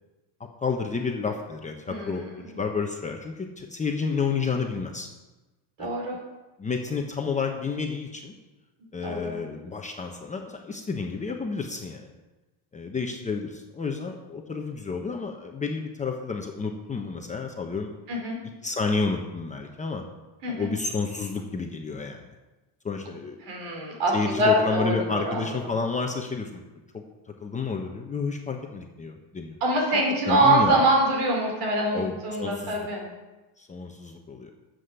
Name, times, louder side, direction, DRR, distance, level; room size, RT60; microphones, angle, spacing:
voice 1, 0.6-5.1 5.8-5.9 6.6-8.3 8.9-12.1 12.7-17.9 18.6-20.0 20.5-22.2 22.8-23.4 24.1-26.6 26.9-27.0 27.4-29.6 29.9-30.0 30.3-30.8 31.9-32.8 33.6-34.5, left 4 dB, 15° left, 2 dB, 0.9 m, -30 dB
voice 2, 1.9-2.4 5.8-6.2 9.0-9.4 18.1-18.4 20.4-20.7 23.5-25.6 29.6-33.0, right 1 dB, 60° right, -1 dB, 4.8 m, -24 dB
11.5 x 7.9 x 6.8 m, 1.1 s
cardioid pair, 155°, 46 cm